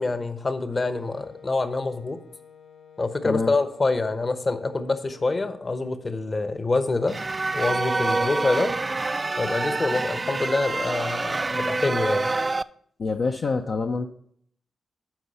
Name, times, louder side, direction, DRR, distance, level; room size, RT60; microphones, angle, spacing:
voice 1, 0.0-2.2 3.0-7.2 7.5-8.7 9.4-12.4, left 3 dB, 40° left, 10 dB, 0.9 m, -26 dB
Wind instrument woodwind instrument, 0.7-6.4, left 7 dB, 75° left, 1.2 m, -50 dB
voice 2, 3.2-3.6 13.0-14.1, left 4 dB, 60° left, 3 dB, 0.5 m, -26 dB
sound 1, 7.1-12.6, right 3 dB, 35° right, 0.3 m, -26 dB
12.0 x 4.7 x 4.2 m, 0.64 s
supercardioid pair, 45°, 0 cm